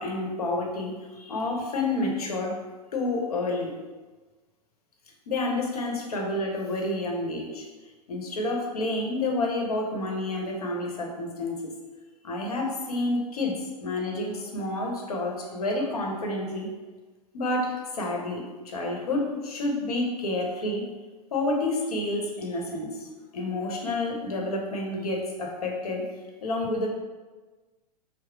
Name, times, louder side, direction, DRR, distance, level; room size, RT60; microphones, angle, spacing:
voice 1, 0.0-2.6 2.9-3.7 5.3-7.6 8.1-11.6 12.2-16.7 17.3-20.8 21.3-23.1 23.3-26.0 26.4-26.9, left 2 dB, 65° left, 0 dB, 1.0 m, -29 dB
4.8 x 2.0 x 4.5 m, 1.3 s
figure-of-eight pair, 100°, 21 cm